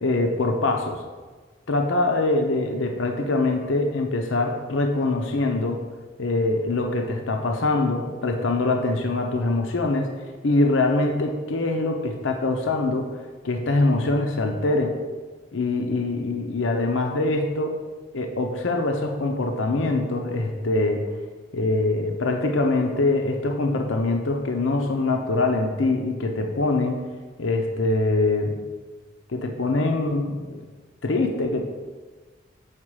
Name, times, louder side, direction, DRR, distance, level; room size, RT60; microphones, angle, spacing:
voice 1, 0.0-1.0 1.7-5.8 6.2-10.1 10.4-13.1 13.4-15.0 15.5-17.7 18.1-21.1 21.5-27.0 27.4-28.6 29.3-30.6 31.0-31.6, left 2 dB, 75° left, 3 dB, 0.7 m, -23 dB
7.4 x 4.8 x 4.8 m, 1.4 s
head